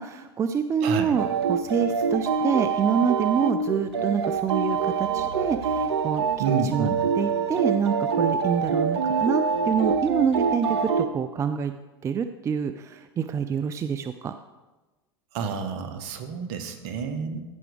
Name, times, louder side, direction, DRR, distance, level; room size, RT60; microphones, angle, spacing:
voice 1, 0.0-6.2 6.7-6.9 7.2-11.7 12.0-14.3, right 7 dB, 20° right, 10 dB, 0.4 m, -27 dB
voice 2, 0.8-1.2 6.4-7.0 15.3-17.4, right 6 dB, 55° right, 8 dB, 1.2 m, -29 dB
sound 1, 1.2-11.1, right 5 dB, 85° right, 0.7 m, -25 dB
14.5 x 6.0 x 3.5 m, 1.2 s
hypercardioid pair, 100°, 14 cm